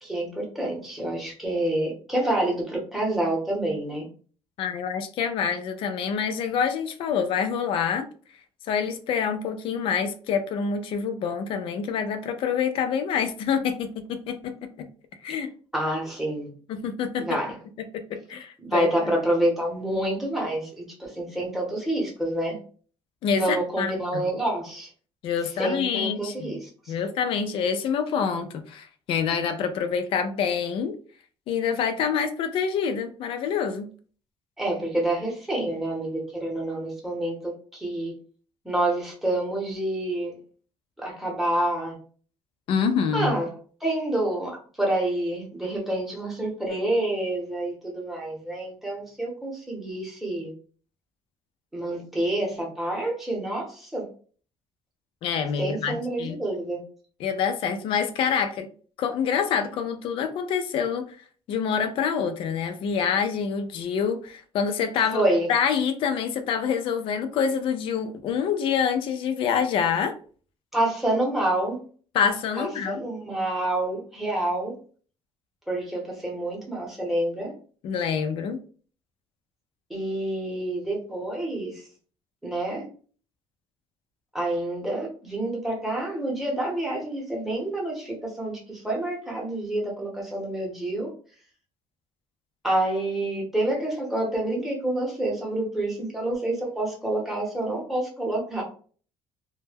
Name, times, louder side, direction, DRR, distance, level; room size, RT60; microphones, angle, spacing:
voice 1, 0.0-4.1 15.7-16.5 17.2-17.6 18.6-22.6 23.3-24.9 25.6-26.9 34.6-38.2 38.6-40.4 41.0-42.0 43.1-43.5 43.8-50.5 51.7-54.1 55.6-56.8 65.1-65.5 70.7-71.8 72.6-74.7 75.7-77.5 79.9-81.9 82.4-82.9 84.3-91.1 92.6-98.6, right 1 dB, ahead, -2 dB, 0.8 m, -28 dB
voice 2, 4.6-8.1 8.7-14.9 15.2-15.5 16.7-17.4 17.9-18.9 23.2-24.2 25.2-26.5 26.9-30.9 31.5-33.9 42.7-43.3 55.2-56.4 57.2-58.7 59.0-61.2 61.5-65.2 65.5-70.1 72.1-73.0 77.8-78.6, left 7 dB, 55° left, 8 dB, 0.4 m, -26 dB
2.1 x 2.1 x 3.3 m, 0.42 s
cardioid pair, 160°, 11 cm